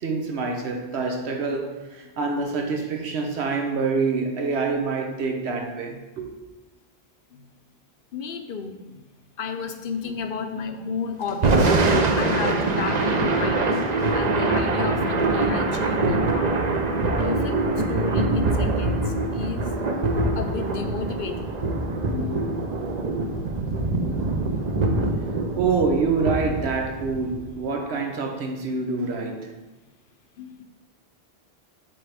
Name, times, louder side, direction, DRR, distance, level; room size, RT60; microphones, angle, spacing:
voice 1, 0.0-6.3 22.8-22.9 25.2-29.5, right 4 dB, 90° right, 3 dB, 1.2 m, -26 dB
voice 2, 8.1-9.0 9.4-11.8 12.2-16.6 17.0-17.6 17.9-19.9 20.3-21.7 22.1-22.4 30.4-30.7, left 5 dB, 60° left, 7 dB, 0.7 m, -33 dB
Thunder / Rain, 11.3-27.5, right 2 dB, 45° right, 0.7 m, -24 dB
8.6 x 3.8 x 3.4 m, 1.1 s
omnidirectional pair, 1.1 m